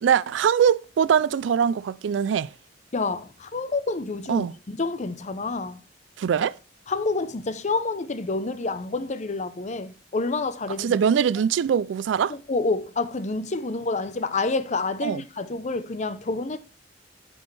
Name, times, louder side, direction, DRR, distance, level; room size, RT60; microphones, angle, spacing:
voice 1, 0.0-2.5 4.3-4.5 6.2-6.6 10.8-12.3 15.0-15.2, right 7 dB, 80° right, 0.3 m, -22 dB
voice 2, 2.9-5.8 6.9-11.0 12.3-16.6, left 3 dB, 40° left, 0.6 m, -28 dB
9.5 x 6.3 x 3.3 m
head